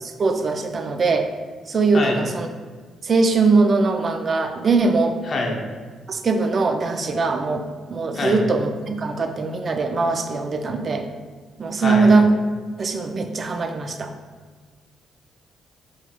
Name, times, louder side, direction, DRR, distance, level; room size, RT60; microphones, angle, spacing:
voice 1, 0.0-1.3 1.7-2.5 3.0-5.2 6.1-11.1 11.6-12.3 12.8-14.1, right 3 dB, 40° right, 6 dB, 0.3 m, -21 dB
voice 2, 1.9-2.2 5.3-5.6 8.1-8.4 11.8-12.2, left 2 dB, 45° left, 0 dB, 0.7 m, -25 dB
4.2 x 3.0 x 2.3 m, 1.5 s
cardioid pair, 90°, 0 cm